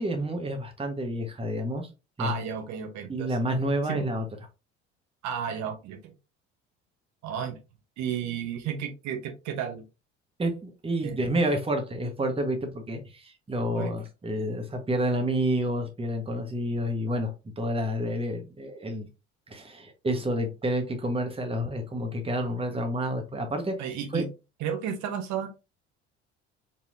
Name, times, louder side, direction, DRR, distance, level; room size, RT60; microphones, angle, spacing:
voice 1, 0.0-1.9 2.2-2.3 3.1-4.2 10.4-19.1 19.5-23.7 24.1-24.2, equal, 15° right, 4 dB, 1.2 m, -29 dB
voice 2, 2.2-3.3 3.9-4.0 5.2-6.0 7.2-7.6 8.0-9.8 11.0-11.2 13.7-13.9 23.8-24.3 24.6-25.5, right 8 dB, 55° right, 4 dB, 1.1 m, -32 dB
4.4 x 3.4 x 2.6 m, 0.28 s
figure-of-eight pair, 60°, 35 cm